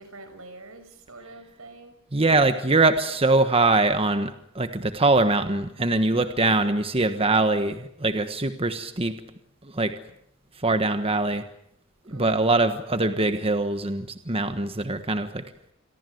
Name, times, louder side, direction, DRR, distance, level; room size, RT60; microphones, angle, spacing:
voice 1, 0.0-2.0 3.1-3.2 12.0-12.6, right 2 dB, 85° right, 9 dB, 5.9 m, -45 dB
voice 2, 2.1-9.2 9.6-9.9 10.6-11.4 12.1-15.4, right 2 dB, 25° right, 9 dB, 1.4 m, -23 dB
28.0 x 22.5 x 8.0 m, 0.75 s
head